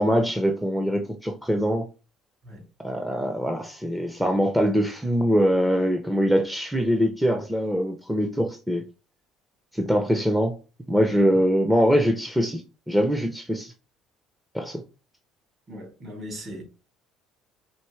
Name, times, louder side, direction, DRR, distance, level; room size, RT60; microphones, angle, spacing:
voice 1, 0.0-1.9 2.8-8.8 9.7-10.6 10.9-12.6 12.9-13.7 14.5-14.8, equal, 5° right, 0.5 m, -23 dB
voice 2, 15.7-16.6, equal, 40° right, 2.4 m, -39 dB
4.4 x 3.0 x 3.1 m
cardioid pair, 125°, 0 cm